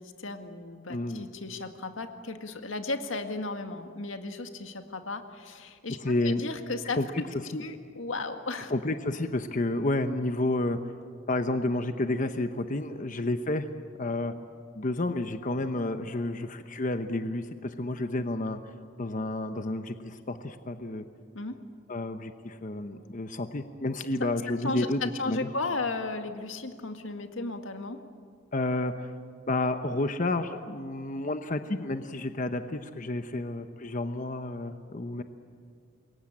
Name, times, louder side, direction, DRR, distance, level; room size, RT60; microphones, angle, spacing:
voice 1, 0.0-6.0 6.2-7.0 7.6-8.7 21.3-21.6 24.6-28.0, left 3 dB, 85° left, 6 dB, 2.0 m, -35 dB
voice 2, 0.9-1.3 6.0-6.4 7.0-7.1 7.5-7.6 8.7-10.8 11.3-13.7 14.0-14.3 14.7-21.0 21.9-25.5 28.5-29.1 29.5-35.2, left 2 dB, 40° left, 8 dB, 0.9 m, -30 dB
27.0 x 22.0 x 8.8 m, 2.1 s
head